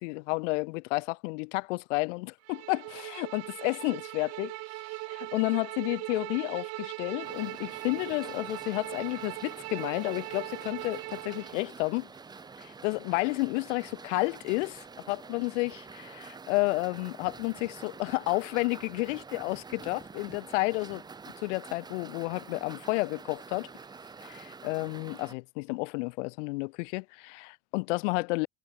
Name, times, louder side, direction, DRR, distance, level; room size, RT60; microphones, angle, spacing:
voice 1, 0.0-4.5 5.1-12.1 12.6-21.0 21.4-23.7 24.2-28.5, left 27 dB, 80° left, 0.7 m, -31 dB
Bowed string instrument, 2.4-11.6, right 22 dB, 45° right, 1.5 m, -40 dB
sound 1, 7.2-25.3, right 5 dB, 10° right, 1.8 m, -47 dB
cardioid pair, 175°, 36 cm